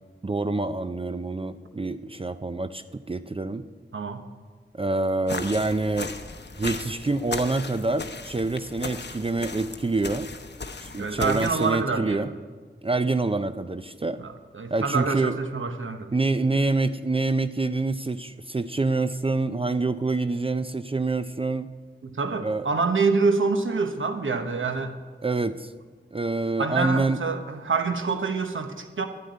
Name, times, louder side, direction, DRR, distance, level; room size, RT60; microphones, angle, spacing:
voice 1, 0.2-3.7 4.7-6.1 6.6-10.3 10.8-12.3 12.8-14.2 14.7-15.4 16.1-21.7 22.4-22.7 25.2-25.7 26.1-27.2, right 3 dB, 30° right, 11 dB, 0.5 m, -26 dB
voice 2, 3.9-4.2 11.0-12.3 14.2-16.1 22.0-24.9 26.6-29.1, right 4 dB, 85° right, 6 dB, 1.1 m, -26 dB
sound 1, 5.3-11.8, left 4 dB, 60° left, 0.8 m, -37 dB
11.5 x 7.9 x 9.4 m, 1.5 s
wide cardioid pair, 60°, 20 cm